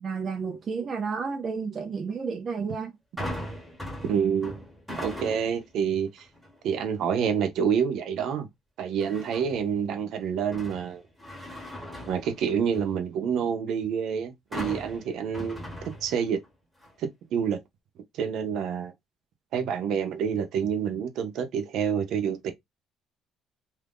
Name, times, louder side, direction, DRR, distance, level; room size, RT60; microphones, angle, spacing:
voice 1, 0.0-2.9 14.6-14.7, right 5 dB, 35° right, 0.4 m, -31 dB
sound 1, 3.2-5.7 6.2-6.6 9.0-9.7 10.1-13.0 14.5-16.5 16.8-16.9, left 1 dB, 5° left, 1.1 m, -39 dB
voice 2, 4.1-4.6 5.0-6.2 6.6-8.5 8.8-11.0 12.0-15.7 16.0-16.4 17.0-17.6 18.1-18.9 19.5-22.5, right 7 dB, 65° right, 0.7 m, -28 dB
2.7 x 2.5 x 3.5 m
cardioid pair, 150°, 0 cm